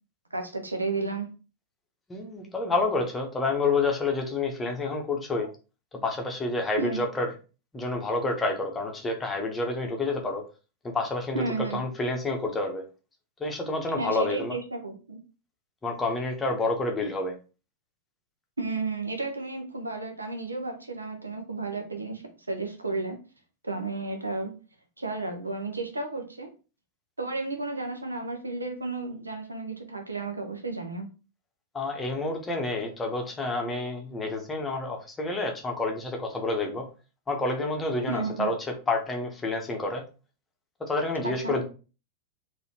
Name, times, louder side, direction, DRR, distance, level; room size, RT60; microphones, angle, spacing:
voice 1, 0.3-1.3 6.8-7.0 11.3-11.8 14.0-15.2 18.6-23.2 23.6-24.5 25.0-26.5 27.2-31.1 38.1-38.5 41.2-41.6, right 3 dB, 80° right, 4 dB, 0.7 m, -33 dB
voice 2, 2.1-5.5 6.0-7.3 7.7-10.4 10.8-11.4 11.7-12.8 13.4-14.6 15.8-17.4 31.7-36.9 37.3-40.0 40.8-41.6, left 2 dB, 15° left, 2 dB, 1.0 m, -29 dB
4.0 x 2.7 x 2.8 m, 0.33 s
figure-of-eight pair, 90°, 0 cm